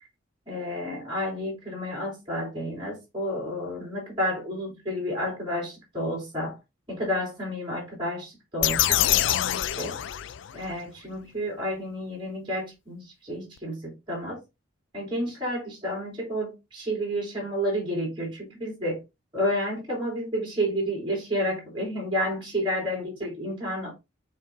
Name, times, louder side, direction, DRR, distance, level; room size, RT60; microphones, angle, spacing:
voice 1, 0.5-6.5 6.9-10.0 10.5-14.4 14.9-19.0 19.3-23.9, equal, 25° right, 3.0 m, -30 dB
sound 1, 8.6-10.7, left 12 dB, 65° left, 0.4 m, -25 dB
7.5 x 3.4 x 3.7 m
head